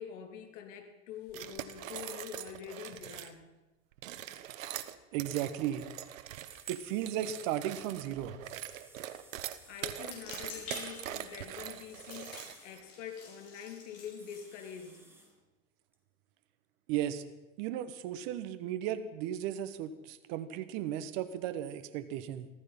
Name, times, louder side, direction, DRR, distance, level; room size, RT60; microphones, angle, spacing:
voice 1, 0.0-3.5 9.7-15.1, left 8 dB, 65° left, 2.8 m, -45 dB
sound 1, 1.3-3.3 3.9-12.8, right 12 dB, 75° right, 1.2 m, -43 dB
voice 2, 5.1-5.9 6.7-8.4 16.9-17.2 17.6-22.5, right 11 dB, 50° right, 1.2 m, -35 dB
sound 2, 6.5-7.5 8.4-10.0 10.9-12.8 14.1-15.3 15.9-16.0, right 2 dB, 5° right, 2.0 m, -59 dB
sound 3, 10.0-15.3, left 4 dB, 35° left, 5.6 m, -49 dB
14.5 x 14.5 x 5.6 m
hypercardioid pair, 115°, 40 cm